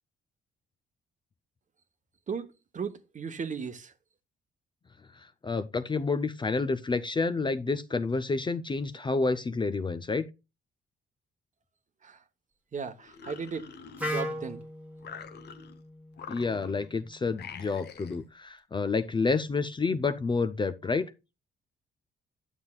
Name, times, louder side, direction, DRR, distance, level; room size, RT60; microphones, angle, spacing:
voice 1, 2.7-3.9 12.0-12.2 12.7-13.7 14.0-14.6, right 5 dB, 40° right, 1.0 m, -36 dB
voice 2, 5.4-10.3 16.3-21.1, left 4 dB, 25° left, 0.5 m, -29 dB
sound 1, 13.0-14.5 15.0-15.8 16.1-16.9 17.3-18.2, left 6 dB, 55° left, 0.8 m, -46 dB
Wind instrument woodwind instrument, 14.0-17.9, left 1 dB, 5° right, 1.3 m, -39 dB
9.7 x 7.1 x 2.3 m
cardioid pair, 90°, 20 cm